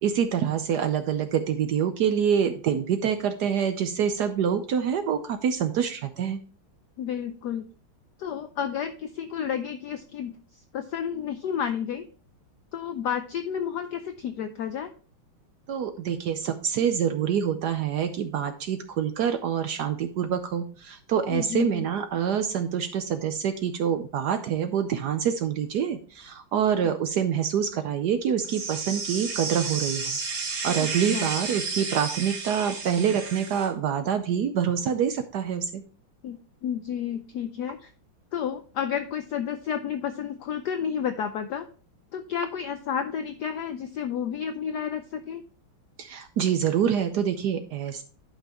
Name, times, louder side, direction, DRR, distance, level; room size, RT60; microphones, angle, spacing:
voice 1, 0.0-6.4 15.7-30.2 30.5-35.8 46.0-48.0, right 8 dB, 70° right, 9 dB, 1.0 m, -26 dB
voice 2, 7.0-7.7 8.2-10.4 10.7-12.1 12.7-14.9 21.3-21.8 26.8-26.9 30.8-31.3 36.2-37.9 38.3-41.7 42.1-45.4, left 8 dB, 75° left, 8 dB, 0.9 m, -31 dB
sound 1, 28.4-33.7, right 4 dB, 45° right, 1.7 m, -32 dB
11.0 x 5.6 x 2.9 m, 0.40 s
omnidirectional pair, 2.3 m